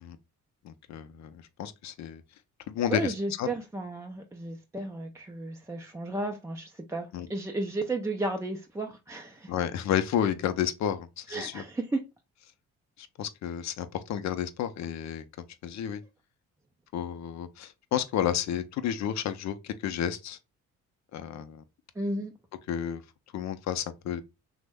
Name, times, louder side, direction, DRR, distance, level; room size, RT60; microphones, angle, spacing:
voice 1, 0.6-2.2 2.7-3.5 7.1-7.3 9.5-11.6 13.0-15.2 15.6-16.0 16.9-20.4 21.1-21.6 22.7-23.0 23.3-24.2, left 9 dB, 65° left, 0.5 m, -31 dB
voice 2, 2.9-9.5 11.3-12.0 22.0-22.3, right 2 dB, 10° right, 0.4 m, -33 dB
3.0 x 2.1 x 3.4 m
cardioid pair, 90°, 30 cm